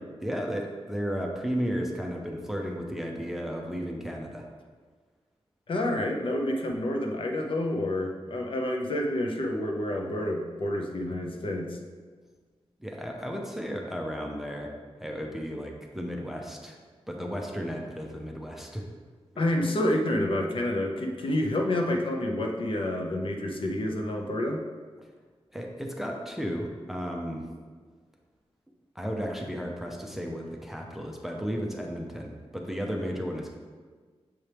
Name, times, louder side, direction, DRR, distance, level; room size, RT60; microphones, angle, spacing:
voice 1, 0.1-4.5 12.8-14.7 15.0-16.8 17.1-18.8 25.5-27.4 29.0-33.5, equal, 5° right, 0 dB, 0.6 m, -34 dB
voice 2, 5.7-11.8 19.4-24.6, left 1 dB, 55° left, 2 dB, 0.7 m, -28 dB
7.1 x 4.4 x 3.4 m, 1.5 s
wide cardioid pair, 155°, 11 cm